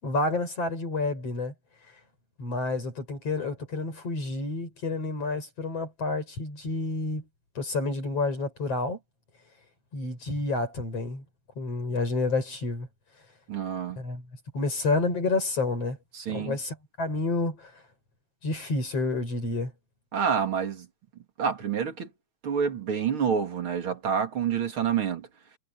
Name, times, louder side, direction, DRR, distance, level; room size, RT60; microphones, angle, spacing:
voice 1, 0.0-1.5 2.4-7.3 7.5-9.0 9.9-11.2 11.6-12.9 14.0-14.2 14.5-16.0 16.3-17.7 18.4-19.7, left 3 dB, 45° left, 6.6 m, -29 dB
voice 2, 13.5-14.0 16.1-16.6 20.1-20.9 21.4-22.1 22.4-25.3, right 7 dB, 40° right, 2.9 m, -28 dB
omnidirectional pair, 3.9 m